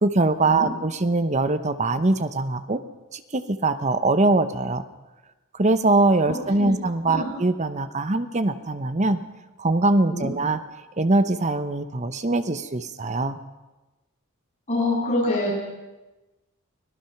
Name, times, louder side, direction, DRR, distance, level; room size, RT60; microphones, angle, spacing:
voice 1, 0.0-2.8 3.1-4.8 5.5-9.2 9.6-10.6 11.0-13.4, right 2 dB, 35° right, 11 dB, 0.9 m, -22 dB
voice 2, 6.3-6.7 7.1-7.2 10.1-10.3 14.7-15.6, left 1 dB, 35° left, -6 dB, 7.9 m, -25 dB
24.5 x 18.0 x 5.9 m, 1.1 s
head